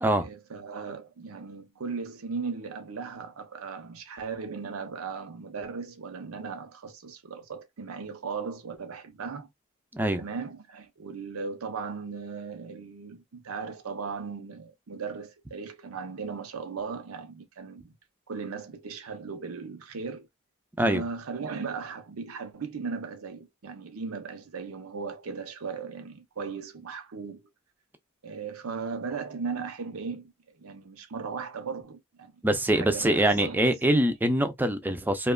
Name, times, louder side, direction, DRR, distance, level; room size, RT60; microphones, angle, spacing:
voice 1, 0.1-9.5 10.2-17.9 18.3-20.3 20.8-27.4 28.2-30.3 30.6-32.4 32.7-33.8, right 5 dB, 85° right, 0.6 m, -37 dB
voice 2, 32.4-35.3, right 1 dB, 10° right, 0.4 m, -24 dB
2.8 x 2.2 x 2.2 m
head